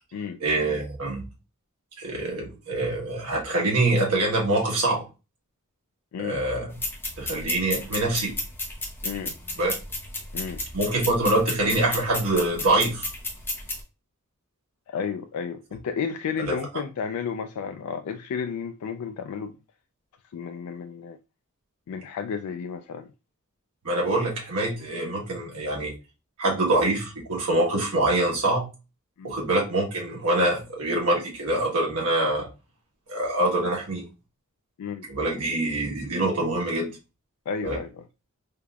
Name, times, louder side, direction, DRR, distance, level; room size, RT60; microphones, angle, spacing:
voice 1, 0.4-1.2 2.0-5.0 6.2-6.8 7.2-8.3 9.6-9.7 10.7-13.1 16.5-16.6 23.8-25.9 26.4-28.7 29.2-32.5 33.1-34.0 35.1-36.9 37.6-37.8, right 2 dB, 90° right, 1.2 m, -25 dB
sound 1, 6.7-13.8, left 2 dB, 10° left, 0.9 m, -33 dB
voice 2, 9.0-9.4 10.3-10.6 14.9-19.5 20.3-21.2 21.9-23.1 29.2-29.4 34.8-35.1 37.5-38.0, left 6 dB, 85° left, 0.3 m, -32 dB
3.7 x 3.4 x 2.3 m
head